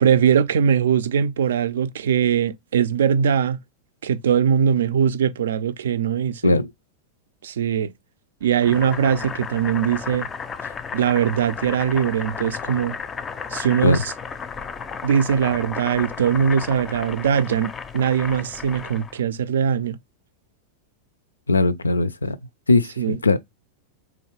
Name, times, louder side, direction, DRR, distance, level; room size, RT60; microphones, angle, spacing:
voice 1, 0.0-3.6 4.0-6.6 7.4-7.9 8.4-10.3 10.9-13.0 13.5-14.1 15.0-20.0 23.0-23.2, right 8 dB, 65° right, 0.4 m, -21 dB
Boiling, 8.5-19.2, left 6 dB, 20° left, 0.5 m, -33 dB
voice 2, 21.5-22.4 22.7-23.4, left 3 dB, 75° left, 0.4 m, -19 dB
3.8 x 3.0 x 2.9 m
figure-of-eight pair, 90°, 0 cm